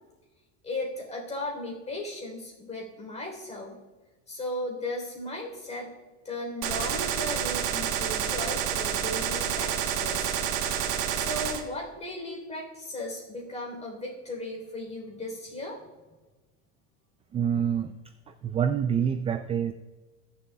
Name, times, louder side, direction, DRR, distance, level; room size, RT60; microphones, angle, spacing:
voice 1, 0.6-3.8 4.3-5.9 6.2-10.3 11.1-15.8, left 1 dB, 20° left, 0 dB, 3.6 m, -36 dB
Gunshot gunfire, 6.6-11.6, right 9 dB, 80° right, 1.3 m, -29 dB
voice 2, 17.3-17.9 18.3-19.7, right 8 dB, 20° right, 10 dB, 0.3 m, -27 dB
20.0 x 7.1 x 2.3 m, 1.2 s
supercardioid pair, 120°, 31 cm